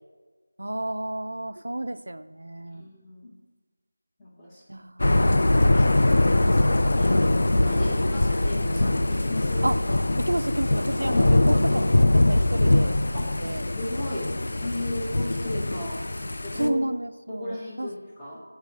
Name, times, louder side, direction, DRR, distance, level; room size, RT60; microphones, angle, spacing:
voice 1, 0.6-2.9 4.7-5.0 7.8-8.3 9.6-9.8 10.2-13.7 16.5-17.9, right 1 dB, 85° right, 12 dB, 0.3 m, -31 dB
voice 2, 2.7-3.3 4.2-4.6 5.3-7.2 7.6-9.7 11.1-11.2 13.1-13.3 13.7-16.8 17.3-18.4, left 1 dB, 5° left, -7 dB, 0.6 m, -36 dB
Thunder / Rain, 5.0-16.7, left 1 dB, 45° left, 0.4 m, -22 dB
5.4 x 4.7 x 6.3 m, 1.4 s
figure-of-eight pair, 175°, 0 cm